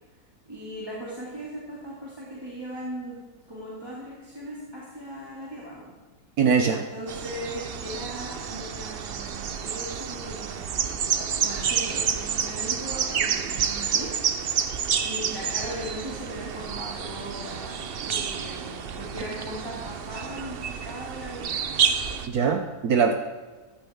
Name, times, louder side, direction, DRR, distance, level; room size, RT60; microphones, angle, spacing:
voice 1, 0.5-3.2 3.5-5.9 6.7-14.8 15.0-21.5, equal, 15° right, -7 dB, 2.1 m, -38 dB
voice 2, 6.4-6.8 22.3-23.1, right 6 dB, 65° right, 5 dB, 1.1 m, -22 dB
sound 1, 7.1-22.3, right 7 dB, 85° right, 0.5 m, -29 dB
14.0 x 11.5 x 3.6 m, 1.3 s
omnidirectional pair, 1.9 m